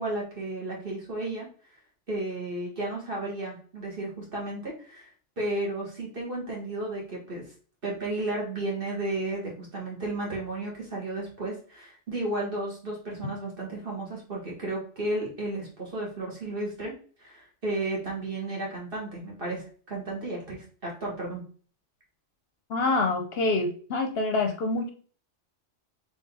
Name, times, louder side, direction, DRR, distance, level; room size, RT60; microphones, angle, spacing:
voice 1, 0.0-1.5 2.1-5.1 5.4-7.4 7.8-16.9 17.2-21.4, right 2 dB, 50° right, -3 dB, 1.9 m, -33 dB
voice 2, 22.7-24.9, left 3 dB, 60° left, 5 dB, 0.8 m, -26 dB
4.0 x 3.3 x 3.7 m, 0.42 s
omnidirectional pair, 1.2 m